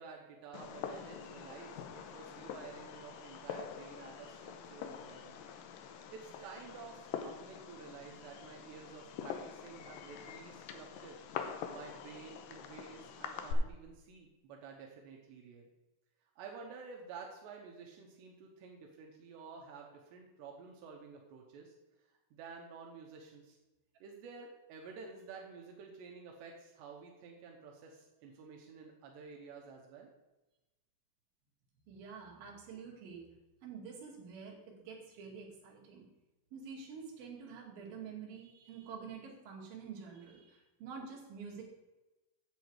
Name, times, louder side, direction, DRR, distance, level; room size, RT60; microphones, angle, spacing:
voice 1, 0.0-5.4 6.1-11.2 11.7-15.7 16.4-21.8 22.3-23.6 24.0-30.1, right 5 dB, 85° right, -1 dB, 3.2 m, -51 dB
Fireworks, 0.5-13.5, left 8 dB, 80° left, 2.1 m, -45 dB
voice 2, 31.9-33.3 33.6-36.1 36.5-41.6, right 6 dB, 60° right, -3 dB, 3.8 m, -48 dB
9.1 x 8.0 x 4.7 m, 1.1 s
omnidirectional pair, 4.8 m